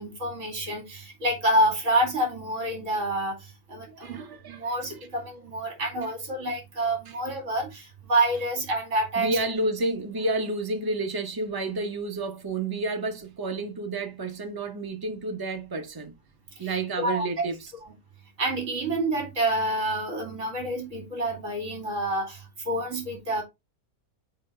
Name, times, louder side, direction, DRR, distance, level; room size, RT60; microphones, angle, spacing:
voice 1, 0.0-9.3 16.6-17.5 17.8-17.9 18.4-23.4, right 1 dB, 45° right, 2.7 m, -28 dB
voice 2, 3.9-5.1 9.2-16.1 16.6-17.6, right 2 dB, 20° right, 0.7 m, -30 dB
6.0 x 5.1 x 3.3 m
omnidirectional pair, 1.8 m